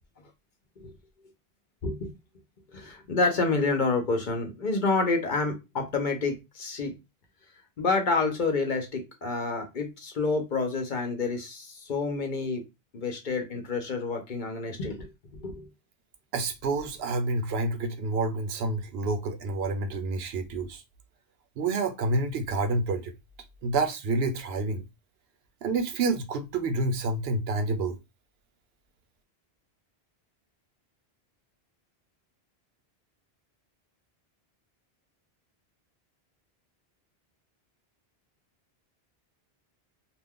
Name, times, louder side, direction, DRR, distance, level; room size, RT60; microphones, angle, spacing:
voice 1, 2.7-6.9 7.8-12.6 12.9-15.7, left 3 dB, 50° left, 0.8 m, -28 dB
voice 2, 16.3-20.8 21.6-23.1 23.6-24.8 25.6-28.0, right 3 dB, 75° right, 0.8 m, -28 dB
2.5 x 2.2 x 3.5 m
omnidirectional pair, 1.1 m